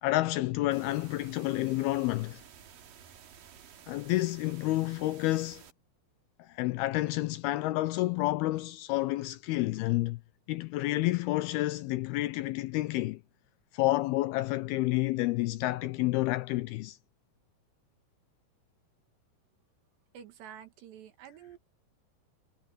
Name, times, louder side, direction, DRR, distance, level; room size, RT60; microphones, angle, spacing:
voice 1, 0.0-2.4 3.9-5.6 6.4-10.2 10.5-13.2 13.7-17.0, left 18 dB, 80° left, 2.3 m, -29 dB
sound 1, 0.7-5.7, right 8 dB, 60° right, 3.4 m, -53 dB
voice 2, 20.1-21.6, right 9 dB, 80° right, 4.1 m, -49 dB
omnidirectional pair, 4.9 m